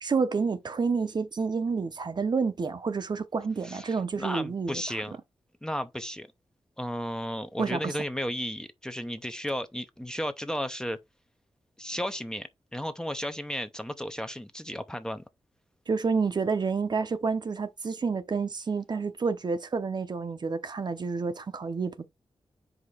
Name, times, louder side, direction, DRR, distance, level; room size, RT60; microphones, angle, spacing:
voice 1, 0.0-5.0 7.6-8.0 15.9-22.1, right 5 dB, 45° right, 0.8 m, -29 dB
voice 2, 3.6-5.2 5.6-6.3 6.8-11.0 11.8-15.2, equal, 5° left, 0.7 m, -34 dB
5.0 x 3.4 x 5.5 m
wide cardioid pair, 120°, 10 cm